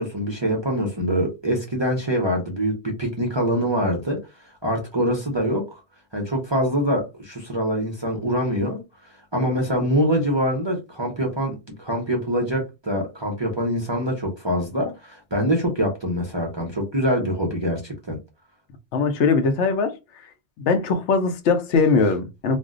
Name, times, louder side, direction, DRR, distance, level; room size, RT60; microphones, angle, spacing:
voice 1, 0.0-4.2 4.6-5.8 6.1-8.8 9.3-18.2, equal, 30° right, 0.6 m, -24 dB
voice 2, 18.9-20.0 20.6-22.6, left 4 dB, 75° left, 0.9 m, -20 dB
2.5 x 2.0 x 3.6 m
omnidirectional pair, 1.2 m